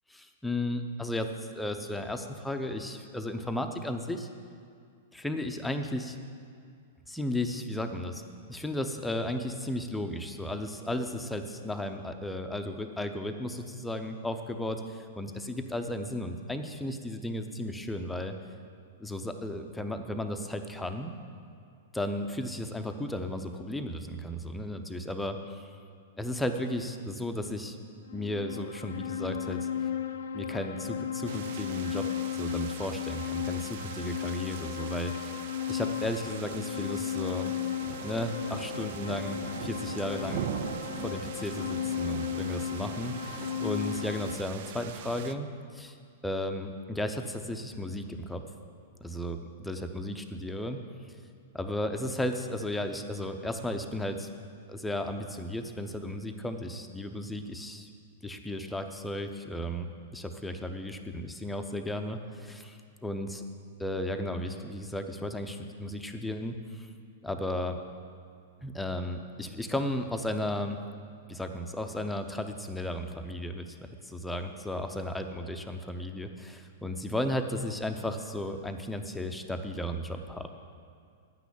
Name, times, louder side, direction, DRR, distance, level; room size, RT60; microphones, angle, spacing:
voice 1, 0.1-1.3 1.5-4.3 5.1-6.2 7.1-8.2 8.5-18.3 19.0-21.1 21.9-25.7 26.2-27.8 28.1-29.7 30.3-32.1 32.3-35.4 35.7-37.5 38.0-40.5 41.0-45.5 45.7-45.9 46.2-48.4 49.0-50.8 51.5-54.3 54.7-57.9 58.2-59.9 60.1-63.4 63.8-66.9 67.2-67.8 68.6-70.8 71.3-80.5, left 1 dB, 5° left, 5 dB, 0.7 m, -34 dB
sound 1, 28.0-44.4, left 9 dB, 75° left, 0.6 m, -35 dB
sound 2, 31.3-45.3, right 10 dB, 60° right, 0.4 m, -42 dB
9.2 x 6.0 x 8.5 m, 2.3 s
hypercardioid pair, 110°, 0 cm